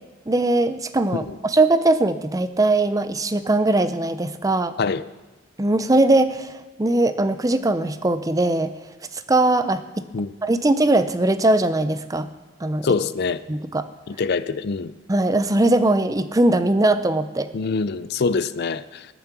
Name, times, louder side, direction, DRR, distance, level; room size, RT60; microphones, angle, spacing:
voice 1, 0.3-4.8 5.6-6.5 6.8-8.7 9.1-10.0 10.4-12.3 12.6-12.9 13.5-13.9 15.1-17.5, right 2 dB, 15° right, 0.5 m, -20 dB
voice 2, 12.8-13.4 14.1-14.9 17.5-19.1, left 4 dB, 50° left, 0.5 m, -24 dB
20.0 x 7.2 x 6.0 m
head